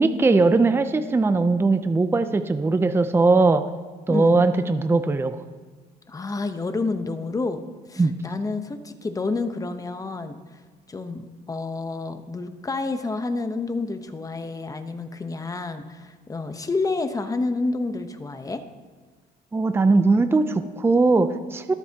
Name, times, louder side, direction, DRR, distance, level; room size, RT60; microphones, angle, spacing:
voice 1, 0.0-3.7 4.1-5.4 8.0-8.1 19.5-21.7, right 3 dB, 15° right, 10 dB, 0.5 m, -20 dB
voice 2, 6.1-7.6 7.9-10.6 10.9-18.6, left 3 dB, 20° left, 8 dB, 0.9 m, -29 dB
21.5 x 7.8 x 2.9 m, 1.4 s
cardioid pair, 110°, 17 cm